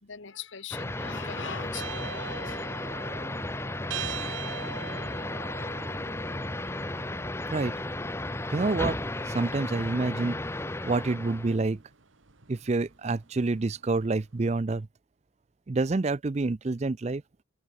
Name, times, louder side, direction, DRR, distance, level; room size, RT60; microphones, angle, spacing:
voice 1, 0.0-3.1, left 7 dB, 70° left, 1.3 m, -42 dB
sound 1, 0.7-11.6, left 1 dB, 15° left, 0.8 m, -34 dB
sound 2, 1.7-13.9, right 7 dB, 75° right, 1.8 m, -44 dB
voice 2, 8.5-9.0 9.3-10.4 10.8-11.8 12.5-14.9 15.7-17.2, right 3 dB, 35° right, 0.4 m, -27 dB
head